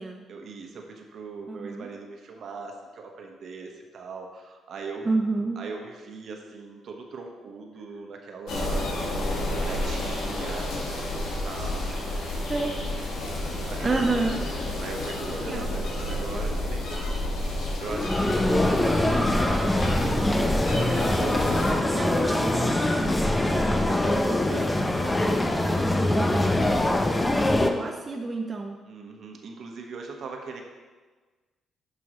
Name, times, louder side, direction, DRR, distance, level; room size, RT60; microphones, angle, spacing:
voice 1, 0.3-5.1 5.5-8.9 9.4-12.5 12.8-12.9 13.3-14.1 14.4-19.2 21.2-22.6 23.3-26.1 28.8-30.6, right 4 dB, 65° right, 2 dB, 1.2 m, -40 dB
voice 2, 1.5-1.9 5.0-5.6 12.5-12.7 13.8-14.4 15.3-15.7 18.2-23.2 27.2-28.8, right 3 dB, 25° right, 1 dB, 0.6 m, -31 dB
sound 1, 8.5-21.7, left 1 dB, 80° left, 1.6 m, -30 dB
sound 2, 17.9-27.7, left 1 dB, 15° left, 0.7 m, -23 dB
11.0 x 5.5 x 3.1 m, 1.3 s
cardioid pair, 90°, 0 cm